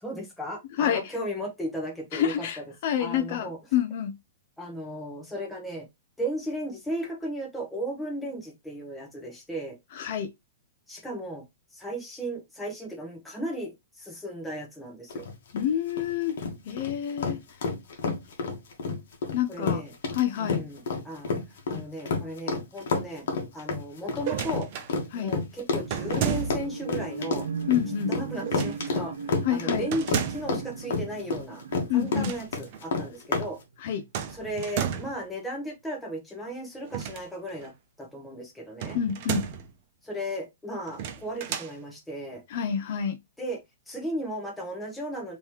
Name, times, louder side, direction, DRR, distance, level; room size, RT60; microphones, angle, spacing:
voice 1, 0.0-2.6 3.0-3.6 4.6-5.9 6.2-9.8 10.9-11.4 11.7-15.3 19.5-19.9 20.4-21.3 21.7-23.3 23.5-24.7 25.1-27.5 28.1-31.6 31.9-33.6 34.3-37.7 38.0-39.0 40.0-42.4 43.4-43.6 43.9-45.4, right 1 dB, 5° left, 0.9 m, -35 dB
voice 2, 0.8-1.1 2.1-4.1 9.9-10.3 15.5-16.4 16.7-17.4 19.3-19.8 20.1-20.6 25.1-25.3 27.7-28.1 29.4-29.8 31.9-32.3 33.8-34.0 38.9-39.4 42.5-43.2, left 10 dB, 45° left, 0.5 m, -28 dB
sound 1, 15.1-33.5, left 4 dB, 60° left, 1.2 m, -29 dB
sound 2, 24.2-24.9 25.9-26.8 28.4-28.9 29.9-30.6 32.0-32.5 32.7-32.8 34.1-35.2 36.8-37.7 38.8-39.7 40.9-41.7, right 8 dB, 35° right, 0.5 m, -32 dB
sound 3, 25.7-33.5 34.0-34.1, right 5 dB, 75° right, 1.0 m, -38 dB
3.7 x 3.0 x 2.9 m
hypercardioid pair, 170°, 0 cm